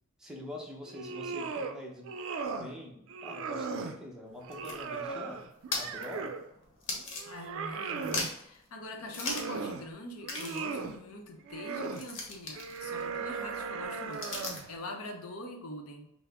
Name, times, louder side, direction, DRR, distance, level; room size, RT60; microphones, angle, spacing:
voice 1, 0.2-2.2 2.5-5.5 5.7-6.4, left 1 dB, 5° right, -1 dB, 0.7 m, -45 dB
sound 1, 0.9-1.8 2.0-2.7 3.1-4.0 4.4-6.5 6.9-8.3 9.0-9.9 10.2-11.0 11.5-12.0 12.6-14.7, right 4 dB, 65° right, 0.4 m, -37 dB
sound 2, 4.3-7.7 8.0-8.6 9.1-9.6 9.9-10.0 10.2-14.8, left 3 dB, 60° left, 1.0 m, -40 dB
voice 2, 7.3-16.1, left 1 dB, 80° left, 4 dB, 0.7 m, -43 dB
5.8 x 2.0 x 3.4 m, 0.77 s
head